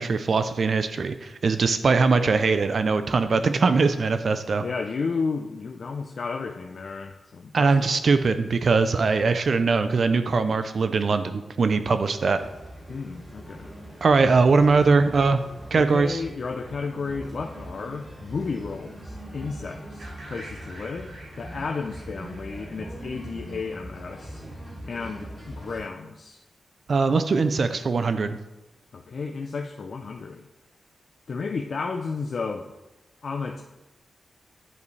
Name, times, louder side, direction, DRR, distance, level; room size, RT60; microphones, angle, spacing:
voice 1, 0.0-4.6 7.5-12.4 14.0-15.4 15.7-16.2 26.9-28.4, right 4 dB, 50° right, 10 dB, 0.3 m, -21 dB
voice 2, 4.6-7.9 12.9-13.7 15.8-24.4 24.9-26.4 28.9-30.5 31.3-32.8 33.2-33.6, left 4 dB, 50° left, 3 dB, 0.4 m, -33 dB
sound 1, 12.3-25.8, right 1 dB, 20° right, 2.5 m, -41 dB
sound 2, 20.0-23.9, right 1 dB, 65° right, 2.1 m, -47 dB
9.3 x 5.2 x 3.2 m, 1.0 s
wide cardioid pair, 160°, 0 cm